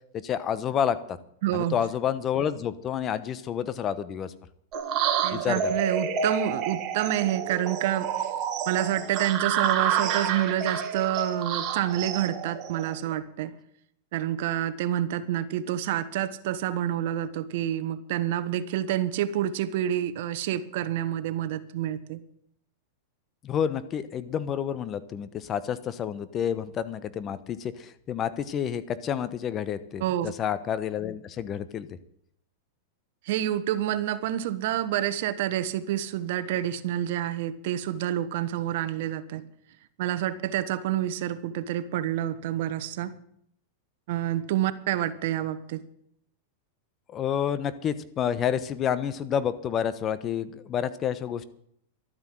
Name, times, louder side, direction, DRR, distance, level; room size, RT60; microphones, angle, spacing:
voice 1, 0.1-1.2 1.5-4.3 5.3-5.7 23.4-31.9 47.1-51.4, left 8 dB, 30° left, 14 dB, 1.0 m, -29 dB
voice 2, 1.4-1.8 5.2-8.3 8.7-13.5 14.1-22.2 30.0-30.3 33.2-39.5 40.0-43.1 44.1-45.8, right 12 dB, 65° right, 14 dB, 1.0 m, -28 dB
sound 1, 4.7-13.1, right 8 dB, 45° right, 1.7 m, -29 dB
12.5 x 9.4 x 7.7 m, 0.69 s
hypercardioid pair, 115°, 0 cm